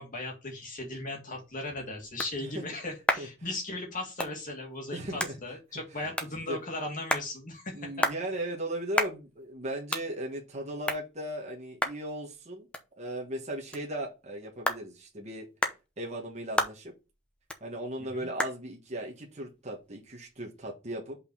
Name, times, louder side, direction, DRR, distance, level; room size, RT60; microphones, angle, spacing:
voice 1, 0.0-8.1 18.1-18.3, left 2 dB, 40° left, 1 dB, 2.2 m, -37 dB
sound 1, 1.3-20.6, left 1 dB, 5° left, 0.7 m, -37 dB
voice 2, 4.9-5.4 6.0-6.1 6.5-6.6 7.7-12.7 13.0-15.5 16.0-16.9 17.6-21.2, right 1 dB, 30° right, -1 dB, 1.5 m, -37 dB
5.5 x 4.5 x 5.5 m, 0.28 s
head